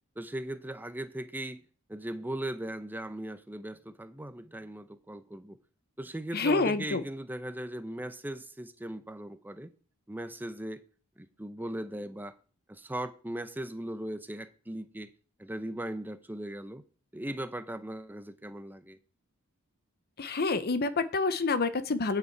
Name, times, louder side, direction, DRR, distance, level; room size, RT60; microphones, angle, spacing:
voice 1, 0.2-1.6 1.9-5.6 6.0-9.7 10.1-10.8 11.2-12.3 12.7-15.1 15.4-16.8 17.1-19.0, right 1 dB, 10° right, 0.6 m, -38 dB
voice 2, 6.3-7.0 20.2-22.2, left 3 dB, 45° left, 0.7 m, -28 dB
9.3 x 8.1 x 4.6 m
head